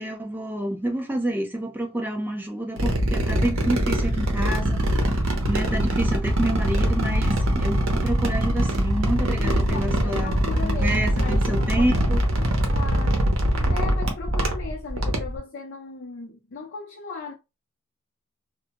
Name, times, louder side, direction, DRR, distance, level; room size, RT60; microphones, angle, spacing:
voice 1, 0.0-5.1 5.5-10.4 10.6-12.2, right 1 dB, 10° right, 0.3 m, -28 dB
sound 1, 2.8-15.4, right 1 dB, 70° right, 0.6 m, -23 dB
voice 2, 9.4-12.0 12.7-13.4 13.7-17.3, left 4 dB, 50° left, 0.5 m, -37 dB
2.1 x 2.0 x 2.8 m
head